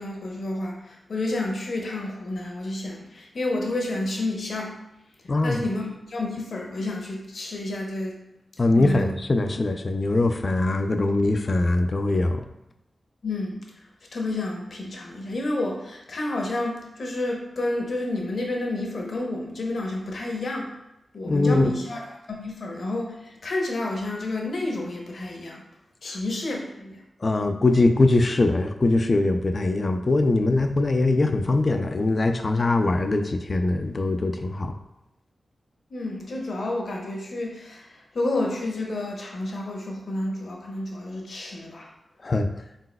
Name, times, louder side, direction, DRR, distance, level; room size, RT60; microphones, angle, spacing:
voice 1, 0.0-4.7 5.4-8.2 8.8-9.1 13.2-13.6 14.1-20.7 21.1-25.6 26.0-27.0 35.9-41.9, left 2 dB, 65° left, 0 dB, 0.8 m, -30 dB
voice 2, 5.3-5.6 8.6-12.4 21.2-21.7 27.2-34.7 42.2-42.5, left 2 dB, 45° left, 7 dB, 0.3 m, -22 dB
4.1 x 4.1 x 2.2 m, 0.89 s
wide cardioid pair, 75°, 0 cm